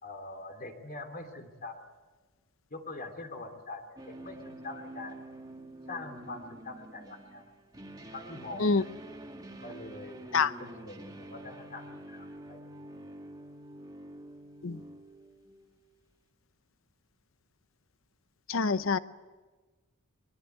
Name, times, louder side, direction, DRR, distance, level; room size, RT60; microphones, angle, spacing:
voice 1, 0.0-1.8 2.7-5.3 5.9-7.6 8.1-8.9 9.6-10.2 10.6-13.1, left 2 dB, 45° left, 6 dB, 3.2 m, -44 dB
sound 1, 4.0-15.9, right 1 dB, 20° right, 2.0 m, -47 dB
voice 2, 18.5-19.0, left 4 dB, 70° left, 14 dB, 0.8 m, -26 dB
23.0 x 21.5 x 9.3 m, 1.3 s
head